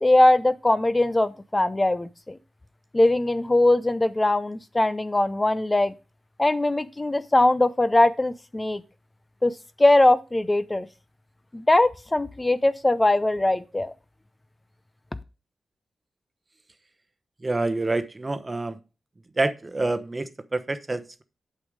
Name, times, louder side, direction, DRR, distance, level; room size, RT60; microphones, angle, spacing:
voice 1, 0.0-2.4 2.9-5.9 6.4-8.8 9.4-10.9 11.5-13.9, left 2 dB, 25° left, 13 dB, 0.7 m, -21 dB
voice 2, 17.4-18.8 19.4-21.2, right 2 dB, 30° right, 11 dB, 1.0 m, -27 dB
8.3 x 5.5 x 5.0 m, 0.30 s
cardioid pair, 50°, 0 cm